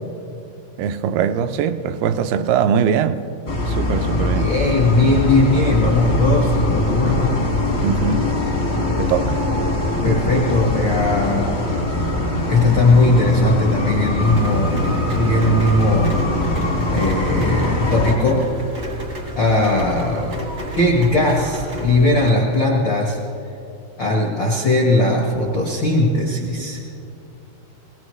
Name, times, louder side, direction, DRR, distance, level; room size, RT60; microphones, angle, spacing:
voice 1, 0.8-3.2 3.7-4.5 7.8-8.3 9.0-9.4, right 8 dB, 85° right, 2.5 m, -21 dB
sound 1, 3.5-18.1, left 2 dB, 60° left, 0.6 m, -22 dB
voice 2, 4.3-7.4 10.0-11.5 12.5-14.7 15.2-16.1 16.4-16.5 16.9-18.5 19.3-20.4 20.8-23.2 24.0-26.8, left 2 dB, 85° left, 1.0 m, -18 dB
Rain, 14.3-22.3, right 1 dB, 60° right, 0.7 m, -31 dB
23.0 x 18.0 x 3.2 m
omnidirectional pair, 4.6 m